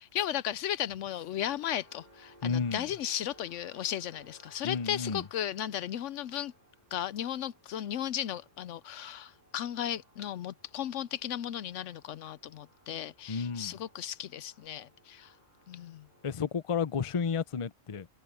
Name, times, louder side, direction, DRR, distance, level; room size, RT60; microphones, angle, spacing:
voice 1, 0.0-6.5 6.9-15.3 15.7-16.1, left 11 dB, 75° left, 0.9 m, -35 dB
sound 1, 1.4-16.4, right 1 dB, 35° right, 5.2 m, -61 dB
voice 2, 2.4-2.9 4.6-5.2 13.3-13.8 16.2-18.1, left 6 dB, 35° left, 0.6 m, -32 dB
omnidirectional pair, 1.3 m